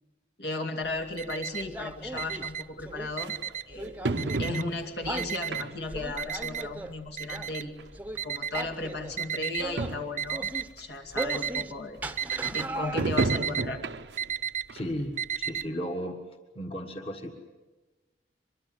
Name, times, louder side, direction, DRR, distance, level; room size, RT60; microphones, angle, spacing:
voice 1, 0.4-3.3 3.7-3.9 4.4-7.7 8.2-10.5 10.8-12.0 12.5-13.8, left 2 dB, 70° left, 3 dB, 2.5 m, -35 dB
Alarm, 0.8-1.8 2.1-3.8 4.2-4.8 5.2-9.6 10.2-10.8 11.1-11.7 12.0-15.6, right 8 dB, 45° right, 0.8 m, -33 dB
sound 1, 1.6-3.1 3.7-4.6 5.0-5.3 5.8-6.9 7.3-7.5 7.9-8.2 8.5-9.2 9.6-9.9 10.2-10.7 11.1-11.7 12.0-13.3, right 1 dB, 10° right, 0.8 m, -38 dB
sound 2, 2.1-2.2 3.2-3.3 4.0-5.0 5.5-6.0 6.4-6.5 7.5-7.6 7.8-7.9 8.7-8.8 9.1-9.2 9.5-9.6 9.8-10.2 10.8-10.9 13.0-14.3 14.7-14.8 15.3-15.4, right 2 dB, 80° right, 0.7 m, -31 dB
voice 2, 14.7-16.2 16.6-17.3, equal, 30° left, 4 dB, 1.6 m, -35 dB
24.0 x 23.0 x 7.9 m, 1.2 s
head